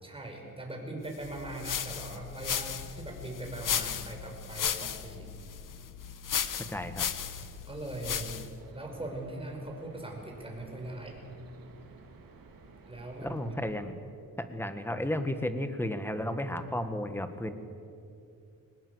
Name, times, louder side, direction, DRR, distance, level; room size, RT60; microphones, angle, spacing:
voice 1, 0.0-5.3 7.7-8.4 8.7-11.2 12.9-13.4, right 1 dB, 15° right, 1 dB, 5.5 m, -40 dB
sound 1, 1.2-8.6, left 8 dB, 60° left, 1.2 m, -35 dB
voice 2, 6.7-7.1 13.2-13.9 14.4-17.5, left 1 dB, 5° left, 9 dB, 1.7 m, -33 dB
sound 2, 8.6-13.8, right 4 dB, 70° right, 3.0 m, -53 dB
23.5 x 19.5 x 8.1 m, 2.6 s
cardioid pair, 105°, 35 cm